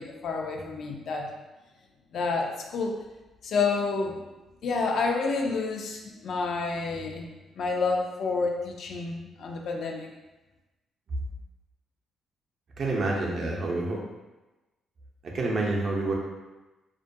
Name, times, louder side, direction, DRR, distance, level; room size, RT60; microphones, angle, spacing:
voice 1, 0.0-1.3 2.1-2.9 3.4-4.2 4.6-7.3 7.6-10.1, left 4 dB, 65° left, 1 dB, 0.4 m, -29 dB
voice 2, 12.8-14.0 15.3-16.2, right 2 dB, 50° right, -1 dB, 0.5 m, -27 dB
2.3 x 2.1 x 2.6 m, 1.1 s
cardioid pair, 90°, 0 cm